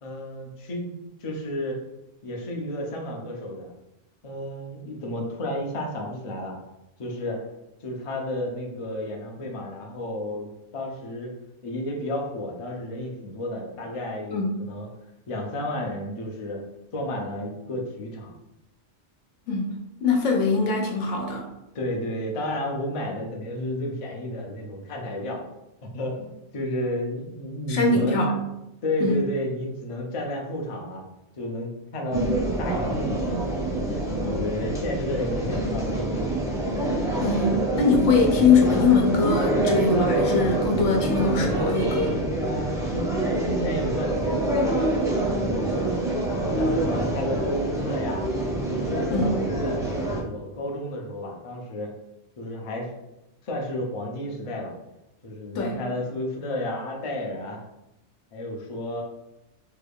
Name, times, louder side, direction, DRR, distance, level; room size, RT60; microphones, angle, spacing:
voice 1, 0.0-0.9 1.2-1.8 2.2-3.7 4.2-6.5 7.0-7.4 7.8-11.3 11.6-14.9 15.3-16.6 16.9-18.3 21.7-25.4 25.8-28.2 28.8-31.0 31.4-32.3 32.6-33.5 33.8-35.9 42.4-43.2 43.4-45.9 46.2-48.3 48.8-51.9 52.4-52.9 53.4-54.7 55.2-57.6 58.3-59.0, left 1 dB, 40° left, 0 dB, 0.5 m, -32 dB
voice 2, 20.0-21.5 27.7-28.4 29.0-29.2 34.2-34.3 37.2-42.1 49.1-49.3 55.5-55.8, left 4 dB, 85° left, 1 dB, 1.0 m, -22 dB
sound 1, 32.1-50.2, right 1 dB, 5° right, 0.6 m, -26 dB
3.3 x 2.3 x 3.4 m, 0.90 s
omnidirectional pair, 1.2 m